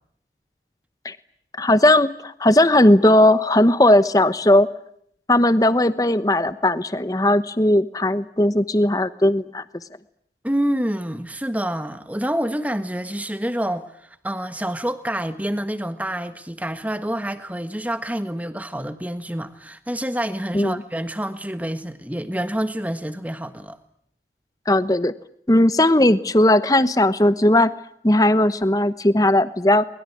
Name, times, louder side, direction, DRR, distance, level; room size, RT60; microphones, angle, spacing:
voice 1, 1.6-4.7 5.3-9.6 20.5-20.8 24.7-25.1 25.5-27.7 28.0-29.8, left 1 dB, 20° left, 1.0 m, -17 dB
voice 2, 10.4-23.8, right 1 dB, 10° right, 1.4 m, -27 dB
23.0 x 21.0 x 10.0 m
head